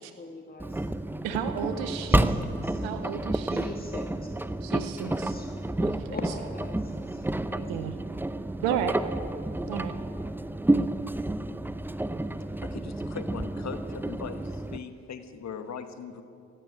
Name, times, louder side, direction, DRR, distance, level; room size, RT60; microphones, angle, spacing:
voice 1, 0.1-0.8 2.1-2.8 3.5-4.3 5.0-5.6 6.1-7.9, left 3 dB, 25° left, 2 dB, 1.6 m, -42 dB
Engine, 0.6-14.8, right 1 dB, 5° right, 0.6 m, -30 dB
voice 2, 1.2-2.3 2.8-3.7 4.6-5.3 5.8-6.2 7.7-8.0 8.6-9.0 9.7-9.9, right 9 dB, 85° right, 9 dB, 0.8 m, -32 dB
voice 3, 12.6-16.2, left 6 dB, 50° left, 9 dB, 1.4 m, -39 dB
15.5 x 9.2 x 9.3 m, 2.5 s
hypercardioid pair, 50°, 34 cm